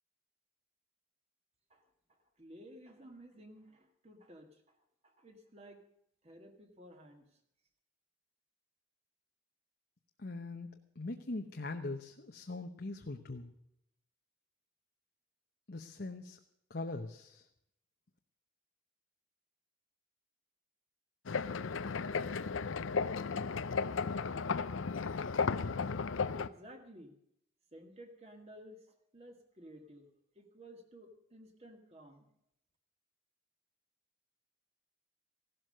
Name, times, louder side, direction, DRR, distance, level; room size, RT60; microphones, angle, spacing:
voice 1, 1.7-4.8 5.0-5.8 6.2-7.4 26.3-27.2 27.7-30.1 30.4-32.3, equal, 30° right, 4 dB, 1.9 m, -55 dB
voice 2, 10.2-13.5 15.7-16.4 16.7-17.5, left 2 dB, 50° left, 4 dB, 0.9 m, -41 dB
sound 1, 21.3-26.5, left 5 dB, 75° left, 0.6 m, -34 dB
16.0 x 12.5 x 6.6 m, 0.75 s
head